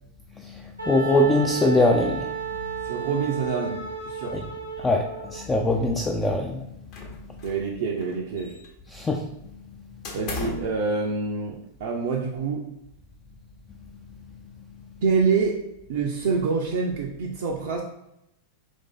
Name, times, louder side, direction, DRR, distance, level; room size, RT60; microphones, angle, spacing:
voice 1, 0.4-2.4 4.3-4.4 4.8-6.7 8.9-9.2, left 2 dB, 15° left, 2 dB, 0.3 m, -22 dB
Wind instrument woodwind instrument, 0.8-5.4, right 6 dB, 85° right, 0.8 m, -33 dB
voice 2, 2.8-4.4 7.4-8.6 10.1-12.7 15.0-15.6 15.9-17.8, right 5 dB, 55° right, -1 dB, 0.4 m, -26 dB
sound 1, 6.9-7.7 8.0-8.9 10.0-10.8, left 3 dB, 40° left, 0.8 m, -36 dB
3.0 x 2.6 x 3.6 m, 0.83 s
figure-of-eight pair, 90°, 0 cm